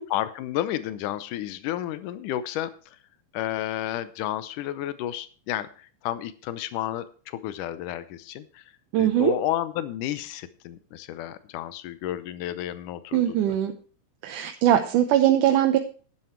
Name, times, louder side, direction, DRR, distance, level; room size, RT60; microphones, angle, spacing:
voice 1, 0.1-2.7 3.3-5.7 6.0-8.6 9.0-13.6, left 13 dB, 90° left, 14 dB, 2.3 m, -31 dB
voice 2, 8.9-9.3 13.1-13.7 14.2-15.8, right 11 dB, 80° right, 6 dB, 2.4 m, -21 dB
11.5 x 9.9 x 4.5 m, 0.40 s
omnidirectional pair, 3.6 m